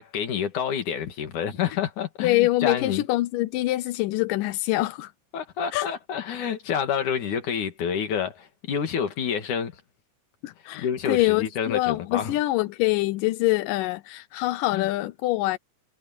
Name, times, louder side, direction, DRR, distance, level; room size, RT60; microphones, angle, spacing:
voice 1, 0.0-3.0 5.3-9.8 10.8-12.4 14.7-14.9, left 7 dB, 70° left, 3.7 m, -28 dB
voice 2, 2.2-5.1 5.7-5.9 10.4-15.6, left 17 dB, 90° left, 2.4 m, -25 dB
omnidirectional pair, 3.7 m